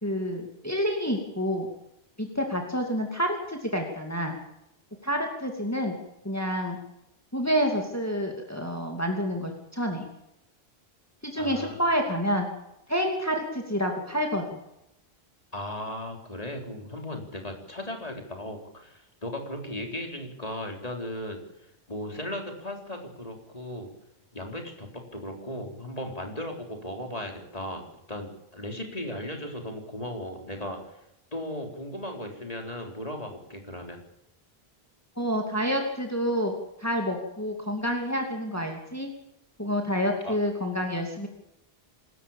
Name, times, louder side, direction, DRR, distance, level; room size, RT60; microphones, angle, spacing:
voice 1, 0.0-1.7 2.2-4.3 5.0-5.9 6.2-6.8 7.3-10.1 11.2-12.5 12.9-14.6 35.2-36.5 36.8-39.1 39.6-41.3, equal, 15° left, 2 dB, 2.7 m, -28 dB
voice 2, 11.4-11.8 15.5-21.4 21.9-23.9 24.3-30.9 31.3-34.0 40.2-40.4, left 1 dB, 40° left, 3 dB, 4.1 m, -36 dB
27.0 x 13.5 x 7.3 m, 0.84 s
omnidirectional pair, 1.0 m